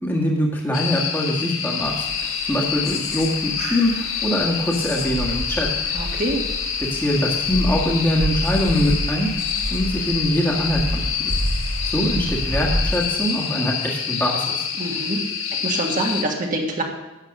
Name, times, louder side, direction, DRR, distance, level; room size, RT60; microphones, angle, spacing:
voice 1, 0.0-5.7 6.8-9.3 9.7-11.0 11.8-14.7, equal, 10° left, -2 dB, 1.7 m, -23 dB
sound 1, 0.7-16.2, left 7 dB, 65° left, 1.3 m, -27 dB
sound 2, 1.8-13.0, equal, 70° right, 3.3 m, -29 dB
voice 2, 5.9-6.4 14.8-15.2 15.5-16.8, right 1 dB, 40° right, 0 dB, 1.6 m, -25 dB
11.0 x 7.5 x 6.4 m, 1.0 s
head